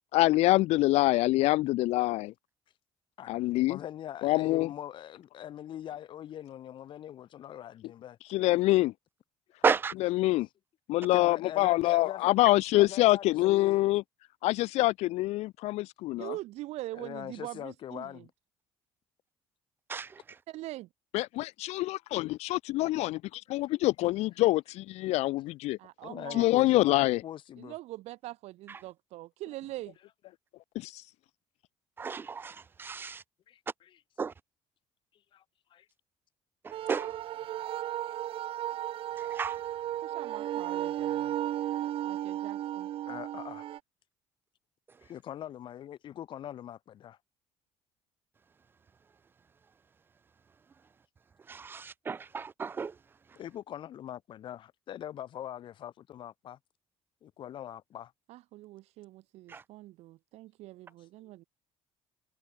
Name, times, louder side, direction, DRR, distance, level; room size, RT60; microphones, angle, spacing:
voice 1, 0.0-2.3 3.3-3.8 4.2-4.7 8.3-8.9 9.9-10.5 10.9-14.0 14.4-16.3 21.1-25.8 26.3-27.2 30.7-31.0, left 18 dB, 75° left, 2.3 m, -26 dB
voice 2, 3.7-8.2 11.1-12.3 12.7-13.8 16.9-18.3 23.5-23.6 26.0-27.7 33.5-34.0 35.3-35.4 35.7-35.8 37.6-37.8 43.1-43.7 45.0-47.2 53.3-56.6 57.2-58.1, left 11 dB, 45° left, 3.4 m, -42 dB
voice 3, 16.2-18.3 20.5-20.9 25.8-26.5 27.6-30.0 40.0-41.3 42.0-42.9 58.3-61.4, right 17 dB, 70° right, 4.5 m, -43 dB
voice 4, 32.0-32.5 32.8-33.2 34.2-34.3 36.9-37.1 39.4-39.5 51.7-51.8 52.1-52.9, right 5 dB, 20° right, 0.4 m, -30 dB
sound 1, 36.7-43.8, right 12 dB, 50° right, 4.4 m, -34 dB
cardioid pair, 150°, 11 cm